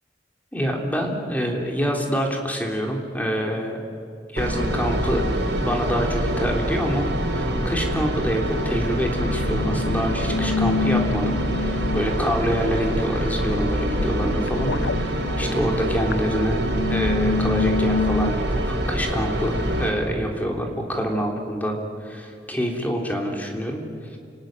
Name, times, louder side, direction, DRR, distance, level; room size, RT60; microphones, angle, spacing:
voice 1, 0.5-3.8 4.3-5.3 5.6-16.6 16.9-21.8 22.0-23.8, equal, 10° left, 1 dB, 3.5 m, -26 dB
sound 1, 4.4-19.9, right 1 dB, 75° right, 4.8 m, -25 dB
sound 2, 9.2-18.3, left 4 dB, 80° left, 0.7 m, -28 dB
29.5 x 19.0 x 9.1 m, 2.5 s
head